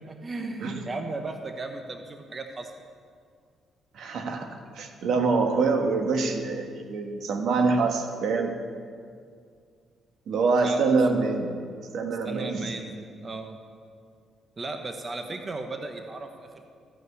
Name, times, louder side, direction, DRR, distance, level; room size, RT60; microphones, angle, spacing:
voice 1, 0.0-2.7 10.6-10.8 12.2-13.6 14.6-16.7, right 3 dB, 30° right, 5 dB, 0.9 m, -36 dB
voice 2, 3.9-8.6 10.3-11.5 11.9-12.7, right 4 dB, 75° right, 4 dB, 1.3 m, -25 dB
13.5 x 5.5 x 8.2 m, 2.1 s
cardioid pair, 90°, 0 cm